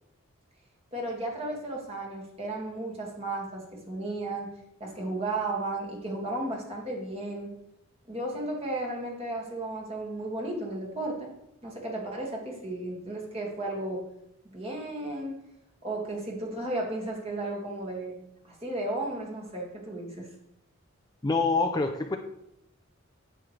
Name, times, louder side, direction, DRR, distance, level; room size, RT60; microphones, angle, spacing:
voice 1, 0.9-7.6 8.1-11.3 11.6-14.0 14.4-15.3 15.8-18.2 18.4-20.3, right 2 dB, 30° right, -1 dB, 2.1 m, -34 dB
voice 2, 21.2-22.2, left 3 dB, 20° left, 4 dB, 0.5 m, -25 dB
9.7 x 8.1 x 3.3 m, 0.81 s
head